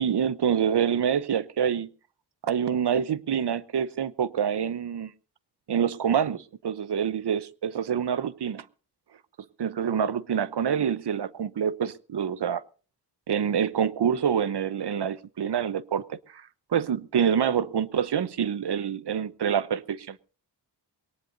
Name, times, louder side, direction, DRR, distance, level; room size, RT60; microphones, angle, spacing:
voice 1, 0.0-1.9 2.4-5.1 5.7-8.6 9.6-12.6 13.3-16.5 16.7-20.2, right 8 dB, 75° right, 0.8 m, -26 dB
21.0 x 18.5 x 2.6 m
wide cardioid pair, 65°, 41 cm